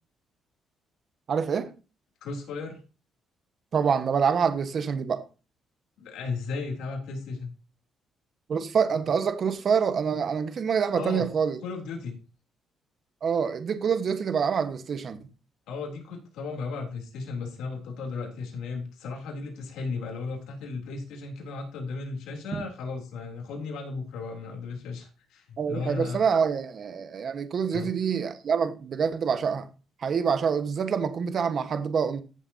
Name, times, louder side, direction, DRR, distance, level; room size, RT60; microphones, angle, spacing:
voice 1, 1.3-1.7 3.7-5.2 8.5-11.6 13.2-15.2 22.5-22.6 25.6-29.7 30.0-32.2, right 6 dB, 55° right, 1.3 m, -26 dB
voice 2, 2.2-2.8 6.0-7.5 10.9-11.3 11.6-12.2 15.7-26.2 27.7-27.9, left 4 dB, 90° left, 3.3 m, -35 dB
14.0 x 7.4 x 2.8 m
cardioid pair, 90°, 0 cm